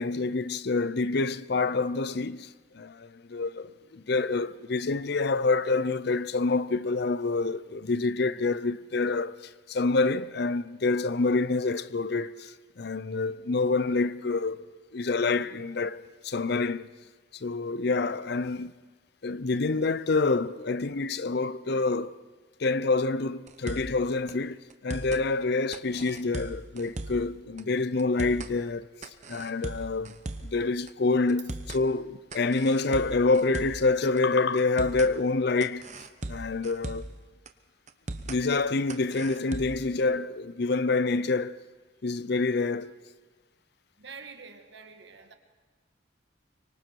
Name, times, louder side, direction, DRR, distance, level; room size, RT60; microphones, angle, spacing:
voice 1, 0.0-14.7 14.9-16.9 17.3-18.7 19.2-22.2 22.6-28.9 29.3-30.2 30.4-35.9 36.3-37.1 38.2-41.6 42.0-42.9, left 3 dB, 55° left, 0.6 m, -27 dB
sound 1, 23.5-24.0 24.3-24.4 24.7-25.2 25.7-27.3 27.6-27.7 28.0-28.5 29.0-30.6 30.9-31.0 31.3-31.8 32.3-33.9 34.2-34.3 34.6-35.1 35.6-37.2 37.5-37.6 37.9-38.4 38.9-39.9, right 2 dB, 40° right, 1.0 m, -38 dB
voice 2, 44.0-45.3, right 5 dB, 60° right, 1.7 m, -46 dB
24.0 x 24.0 x 4.6 m
head